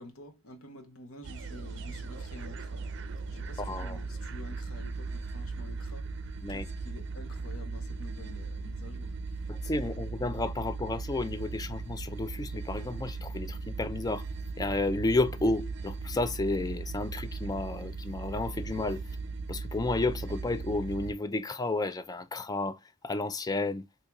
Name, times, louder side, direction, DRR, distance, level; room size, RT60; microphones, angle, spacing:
voice 1, 0.0-9.5, left 2 dB, 70° left, 0.9 m, -49 dB
sound 1, 1.2-21.1, right 4 dB, 55° right, 0.5 m, -38 dB
voice 2, 3.6-4.0 6.4-6.7 9.5-14.3 14.6-19.0 19.5-23.9, left 2 dB, 15° left, 0.3 m, -32 dB
4.4 x 2.8 x 2.2 m
head